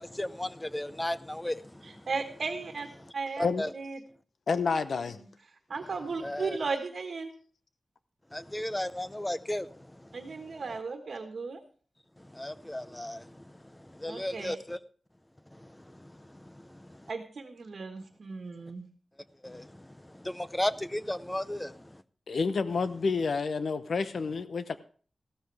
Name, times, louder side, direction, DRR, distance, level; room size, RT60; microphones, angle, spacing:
voice 1, 0.0-2.0 3.4-3.7 6.2-6.6 8.3-10.1 12.2-14.8 15.5-16.1 16.4-17.0 19.4-22.0, left 1 dB, 10° left, 0.6 m, -35 dB
voice 2, 1.8-2.9 3.1-3.5 3.7-4.0 5.2-5.3 5.7-7.3 10.1-11.6 14.1-14.6 17.1-18.9, right 4 dB, 70° right, 1.4 m, -36 dB
voice 3, 4.5-5.2 22.3-24.8, left 4 dB, 80° left, 0.8 m, -29 dB
15.0 x 13.0 x 3.4 m
wide cardioid pair, 120°, 0 cm